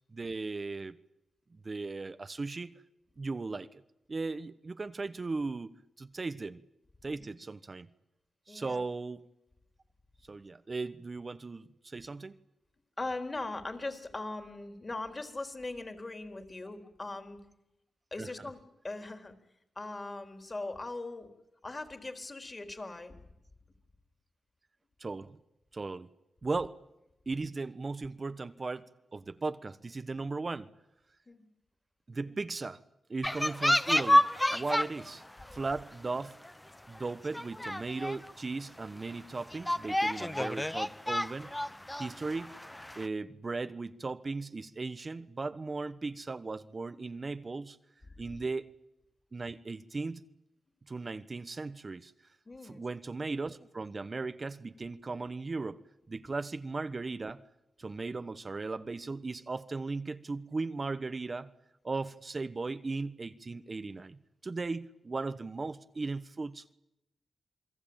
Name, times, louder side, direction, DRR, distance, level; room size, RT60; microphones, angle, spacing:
voice 1, 0.1-1.0 1.5-2.7 3.2-3.8 4.1-6.6 7.0-7.9 8.5-9.2 10.3-12.4 18.2-18.5 25.0-25.4 25.7-26.1 26.4-26.8 27.3-30.7 32.1-32.8 33.1-35.2 35.5-36.4 36.9-41.5 42.0-42.6 42.9-47.8 48.2-48.7 49.3-50.2 50.9-52.1 52.6-55.8 56.1-57.4 57.8-61.5 61.8-66.7, right 3 dB, 40° right, 1.1 m, -37 dB
voice 2, 8.5-8.8 13.0-17.4 18.1-19.3 19.8-21.3 21.6-23.2 31.3-31.5 48.1-48.4 52.5-52.8, left 2 dB, 35° left, 4.1 m, -40 dB
sound 1, 33.2-35.1 35.4-35.8 36.4-36.5 36.9-37.0 37.3-38.3 38.8-38.9 39.5-43.1, left 1 dB, 10° left, 1.1 m, -29 dB
28.5 x 21.0 x 9.0 m
cardioid pair, 60°, 0 cm